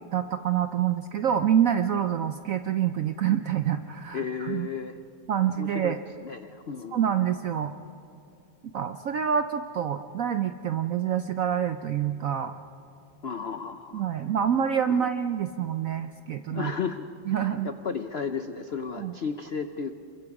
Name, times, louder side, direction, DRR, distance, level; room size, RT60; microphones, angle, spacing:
voice 1, 0.1-4.7 5.3-6.0 6.9-7.7 8.7-12.6 13.9-16.7 17.3-17.7 19.0-19.1, right 9 dB, 70° right, 9 dB, 0.7 m, -27 dB
voice 2, 4.1-5.0 5.6-7.0 13.2-14.0 14.9-15.1 16.5-19.9, left 6 dB, 75° left, 8 dB, 0.5 m, -34 dB
28.0 x 23.5 x 4.8 m, 2.7 s
omnidirectional pair, 2.1 m